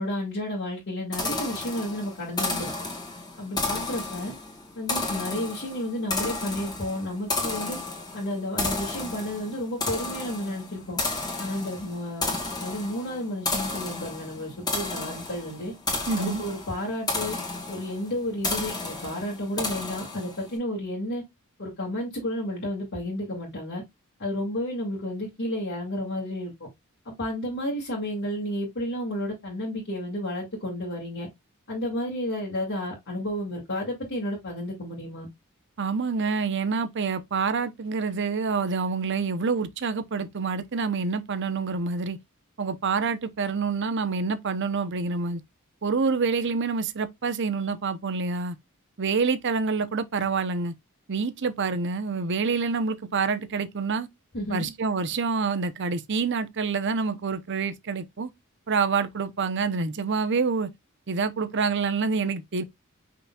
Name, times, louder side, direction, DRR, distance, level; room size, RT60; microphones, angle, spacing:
voice 1, 0.0-2.7 3.4-4.3 4.8-7.8 8.1-11.0 11.4-15.7 16.2-17.4 17.7-21.2 21.6-23.8 24.2-26.5 27.1-31.3 31.7-35.3 54.3-54.7, left 1 dB, 60° left, 2.0 m, -32 dB
sound 1, 1.1-20.5, left 2 dB, 20° left, 1.7 m, -32 dB
voice 2, 16.1-16.4 35.8-42.2 42.6-45.4 45.8-48.5 49.0-50.7 51.1-54.1 54.5-58.3 58.7-60.7 61.1-62.6, right 4 dB, 55° right, 0.7 m, -27 dB
5.7 x 3.9 x 2.3 m
head